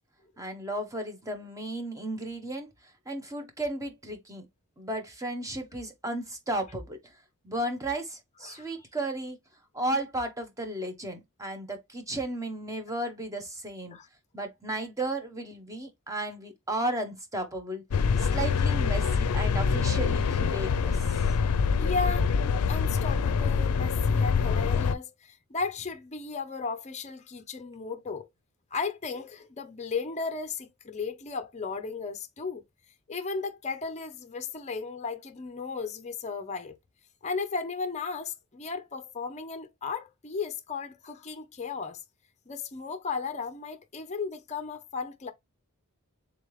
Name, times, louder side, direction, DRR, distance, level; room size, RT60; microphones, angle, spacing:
voice 1, 0.4-2.7 3.1-4.5 4.8-7.2 7.4-9.4 9.7-14.0 14.3-17.8 18.2-21.3, right 1 dB, 15° right, 0.8 m, -34 dB
sound 1, 17.9-24.9, left 5 dB, 90° left, 0.4 m, -25 dB
voice 2, 21.8-22.3 22.7-28.3 28.7-32.6 33.1-36.8 37.2-42.0 42.5-45.3, left 4 dB, 30° left, 0.5 m, -35 dB
3.6 x 3.3 x 3.1 m
head